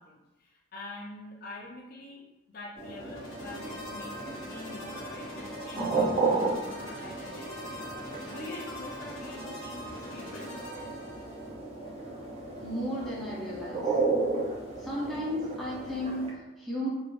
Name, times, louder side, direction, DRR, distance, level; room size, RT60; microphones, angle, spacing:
voice 1, 0.0-10.9, left 2 dB, 50° left, -3 dB, 0.4 m, -46 dB
sound 1, 2.8-16.3, right 3 dB, 30° right, 0.6 m, -34 dB
sound 2, 3.0-11.5, left 1 dB, 85° left, 0.8 m, -43 dB
voice 2, 12.6-13.9 14.8-16.9, equal, ahead, -8 dB, 0.8 m, -34 dB
3.1 x 2.6 x 2.5 m, 1.0 s
head